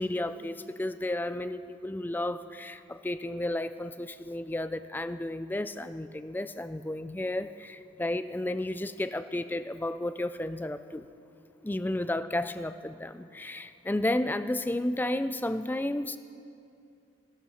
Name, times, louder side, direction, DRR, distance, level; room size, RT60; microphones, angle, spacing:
voice 1, 0.0-11.1 11.6-16.2, left 1 dB, 10° left, 12 dB, 0.3 m, -32 dB
14.5 x 12.5 x 5.6 m, 2.6 s
head